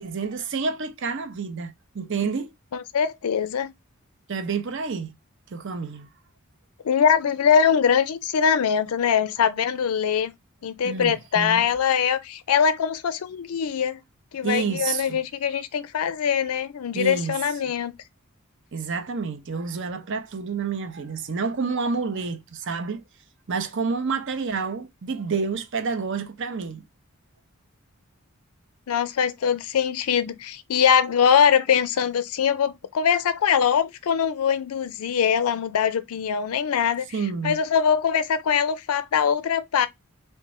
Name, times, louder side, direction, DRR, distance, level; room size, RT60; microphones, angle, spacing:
voice 1, 0.0-2.5 4.3-5.1 5.5-6.1 10.8-11.7 14.4-15.2 16.9-17.3 18.7-23.0 23.5-26.8 37.1-37.6, right 5 dB, 55° right, 0.6 m, -29 dB
voice 2, 2.7-3.7 6.8-10.3 10.6-14.0 14.3-17.9 28.9-37.1 37.4-39.9, left 7 dB, 80° left, 0.4 m, -22 dB
3.6 x 2.2 x 4.1 m
head